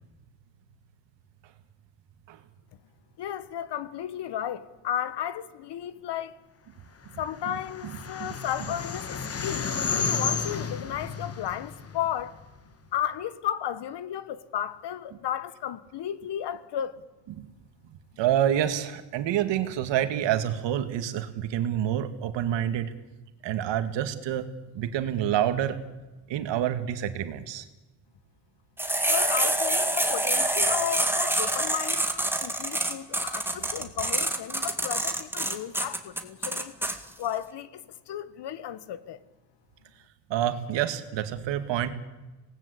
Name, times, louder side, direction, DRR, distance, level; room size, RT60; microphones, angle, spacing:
voice 1, 3.2-6.4 7.2-12.4 12.9-17.0 29.1-36.7 37.2-39.2, left 10 dB, 70° left, 1.5 m, -34 dB
sound 1, 7.2-12.6, left 5 dB, 35° left, 1.8 m, -32 dB
voice 2, 7.8-8.3 17.4-17.5 18.2-22.9 23.4-24.4 24.7-25.8 26.3-27.7 40.3-41.9, right 11 dB, 90° right, 2.1 m, -27 dB
sound 2, 28.8-36.9, right 1 dB, 5° right, 2.0 m, -26 dB
26.0 x 19.0 x 8.5 m
cardioid pair, 120°, 43 cm